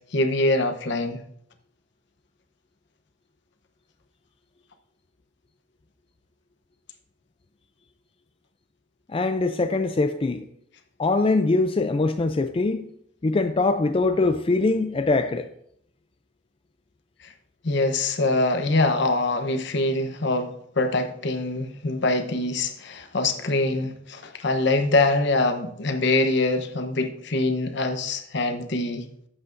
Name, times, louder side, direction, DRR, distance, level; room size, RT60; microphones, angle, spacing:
voice 1, 0.1-1.2 17.2-17.3 17.6-29.1, left 2 dB, 65° left, 0.9 m, -24 dB
voice 2, 9.1-10.4 11.0-12.9 13.2-15.5, left 3 dB, 30° left, 0.4 m, -22 dB
12.5 x 8.0 x 2.6 m
head